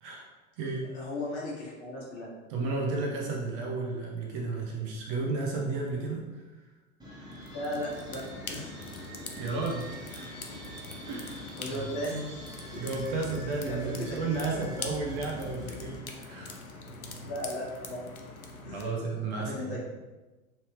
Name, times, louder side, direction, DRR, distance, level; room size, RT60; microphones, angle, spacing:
voice 1, 0.0-0.9 2.5-6.6 9.3-9.9 10.1-10.4 11.1-11.8 12.7-16.6 18.6-19.8, right 3 dB, 40° right, 0 dB, 0.7 m, -33 dB
voice 2, 0.9-2.3 7.5-8.8 11.5-12.4 12.7-12.8 13.6-14.4 17.2-18.1 18.6-18.9 19.4-19.8, left 1 dB, 35° left, -4 dB, 1.2 m, -36 dB
sound 1, 7.0-16.0, equal, 10° right, 1.2 m, -45 dB
sound 2, 7.3-18.8, left 3 dB, 85° left, 0.6 m, -43 dB
3.2 x 2.7 x 3.1 m, 1.2 s
figure-of-eight pair, 90°, 42 cm